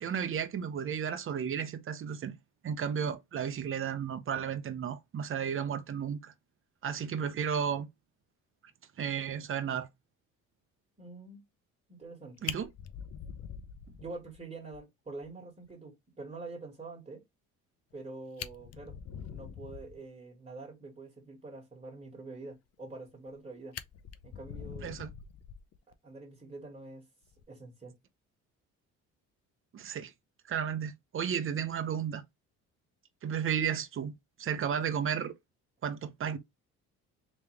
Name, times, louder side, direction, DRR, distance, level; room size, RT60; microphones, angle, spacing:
voice 1, 0.0-2.4 2.6-6.3 6.8-7.9 9.0-9.9 12.4-12.7 24.8-25.1 29.7-30.1 30.5-32.2 33.2-35.3 35.8-36.4, right 8 dB, 40° right, 0.8 m, -33 dB
voice 2, 11.0-11.4 11.9-12.4 14.0-17.2 17.9-18.9 19.2-23.7 24.2-25.0 26.0-27.0 27.5-27.9, right 3 dB, 25° right, 2.1 m, -46 dB
Fire, 12.0-12.1 12.4-14.4 14.7-14.8 15.2-15.3 15.7-15.8 17.9-18.0 18.3-20.0 22.8-23.4 23.7-25.9 27.2-27.4, left 9 dB, 55° left, 0.6 m, -43 dB
3.3 x 3.1 x 3.3 m
cardioid pair, 95°, 31 cm